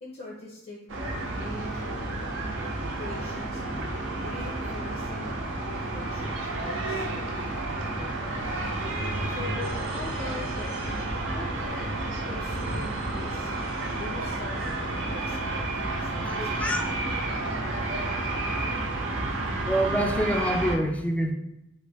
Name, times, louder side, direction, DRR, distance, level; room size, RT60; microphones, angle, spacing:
voice 1, 0.0-2.3 2.9-3.6 4.2-7.4 7.7-8.4 9.3-10.9 11.3-13.5 13.9-16.8, left 2 dB, 55° left, -3 dB, 0.6 m, -42 dB
sound 1, 0.9-20.8, right 2 dB, 90° right, 0.6 m, -31 dB
sound 2, 8.3-11.5, left 1 dB, 85° left, 0.8 m, -47 dB
sound 3, 9.6-15.4, right 1 dB, 55° right, 0.8 m, -44 dB
voice 2, 16.2-16.9 18.1-18.2 19.6-21.3, equal, 5° left, 3 dB, 0.3 m, -27 dB
3.2 x 2.5 x 3.3 m, 0.90 s
head